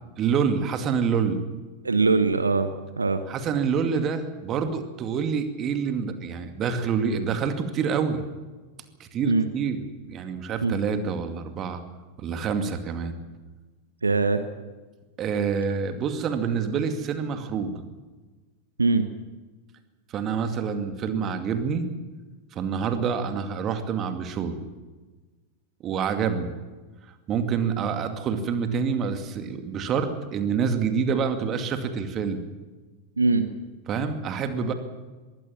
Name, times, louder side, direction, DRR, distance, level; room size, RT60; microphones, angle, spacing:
voice 1, 0.2-1.4 3.3-8.2 9.0-11.8 12.2-13.1 15.2-17.8 20.1-21.9 22.5-24.6 25.8-26.5 27.3-32.4 33.9-34.7, right 6 dB, 30° right, 8 dB, 2.4 m, -27 dB
voice 2, 1.8-2.7 3.0-3.2 9.2-9.4 10.6-10.7 14.0-14.4 18.8-19.0 33.2-33.4, right 3 dB, 80° right, 10 dB, 1.1 m, -21 dB
22.0 x 16.5 x 7.4 m, 1.3 s
figure-of-eight pair, 90°, 0 cm